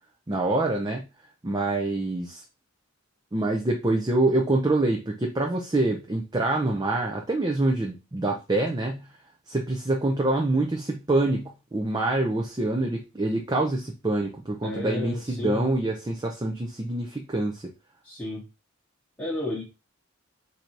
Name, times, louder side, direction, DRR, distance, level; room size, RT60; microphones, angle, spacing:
voice 1, 0.3-1.0 1.4-2.4 3.3-9.1 9.5-17.6, right 2 dB, 20° right, 1 dB, 0.5 m, -26 dB
voice 2, 14.6-15.7 18.0-18.4 19.2-19.6, left 1 dB, 10° left, -5 dB, 1.0 m, -32 dB
3.8 x 2.7 x 4.5 m, 0.27 s
head